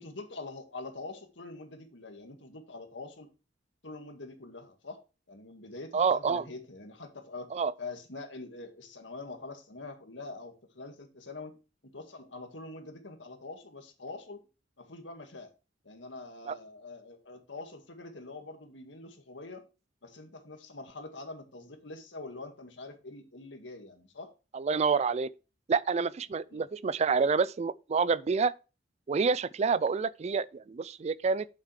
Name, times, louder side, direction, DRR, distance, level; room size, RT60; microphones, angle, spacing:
voice 1, 0.0-3.3 3.8-5.0 5.3-7.5 7.8-11.6 11.8-14.4 14.8-15.5 15.8-19.6 20.0-24.3 26.5-26.6, left 3 dB, 85° left, 1.9 m, -44 dB
voice 2, 5.9-6.4 7.5-7.7 16.5-16.6 24.5-25.3 25.7-28.5 29.1-31.5, right 5 dB, 35° right, 0.4 m, -28 dB
8.7 x 7.3 x 3.3 m
head